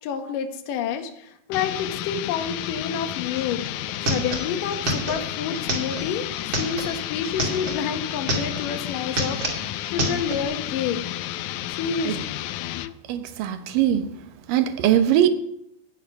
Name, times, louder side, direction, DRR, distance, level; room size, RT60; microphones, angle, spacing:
voice 1, 0.0-3.6 4.1-6.3 6.5-11.0 11.7-12.2, left 7 dB, 65° left, 2.8 m, -29 dB
sound 1, 1.5-13.0, left 14 dB, 90° left, 1.7 m, -32 dB
sound 2, 3.4-3.5 3.7-7.8 8.1-8.8 9.0-10.4, right 1 dB, 35° right, 2.8 m, -28 dB
voice 2, 13.1-14.1 14.5-15.3, right 11 dB, 70° right, 2.6 m, -21 dB
16.0 x 7.1 x 9.7 m
omnidirectional pair, 4.3 m